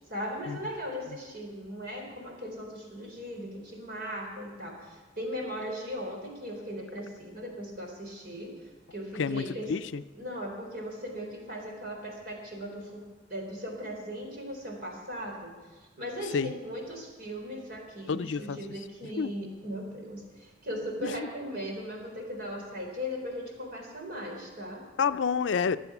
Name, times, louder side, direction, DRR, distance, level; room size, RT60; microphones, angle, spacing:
voice 1, 0.1-8.5 8.9-9.7 10.1-13.0 13.3-15.5 15.8-24.8, equal, 50° right, 1 dB, 3.7 m, -38 dB
voice 2, 9.2-10.0 16.3-16.5 18.1-18.6 19.2-19.3 21.0-21.1 25.0-25.8, left 6 dB, 75° left, 13 dB, 0.4 m, -28 dB
21.5 x 7.7 x 6.0 m, 1.3 s
head